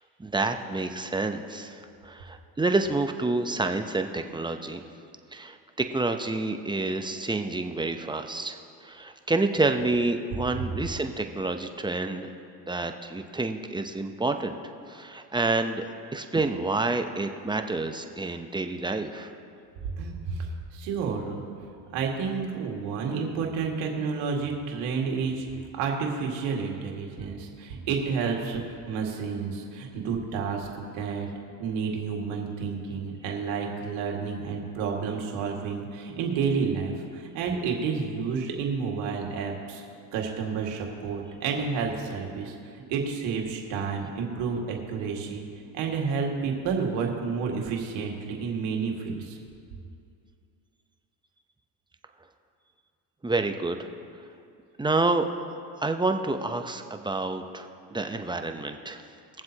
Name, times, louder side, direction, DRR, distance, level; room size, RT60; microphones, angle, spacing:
voice 1, 0.2-4.8 5.3-12.3 12.6-14.6 14.9-15.8 16.1-19.3 53.2-53.9 54.8-55.3 55.8-59.0, right 2 dB, 10° right, 6 dB, 0.7 m, -28 dB
voice 2, 20.0-21.4 21.9-25.4 25.7-31.3 31.6-39.8 40.1-45.4 45.7-49.4, right 5 dB, 75° right, 1 dB, 2.1 m, -30 dB
21.5 x 7.6 x 2.9 m, 2.4 s
supercardioid pair, 85°, 47 cm